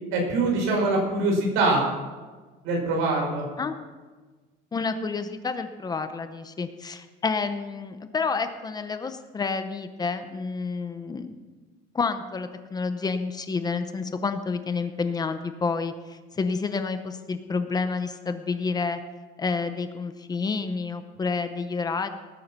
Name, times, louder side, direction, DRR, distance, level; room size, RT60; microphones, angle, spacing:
voice 1, 0.1-1.8 2.6-3.4, right 2 dB, 80° right, 0 dB, 6.0 m, -23 dB
voice 2, 4.7-11.4 11.9-19.0 19.4-22.1, left 4 dB, 20° left, 9 dB, 0.8 m, -29 dB
19.5 x 9.4 x 6.0 m, 1.3 s
cardioid pair, 160°, 20 cm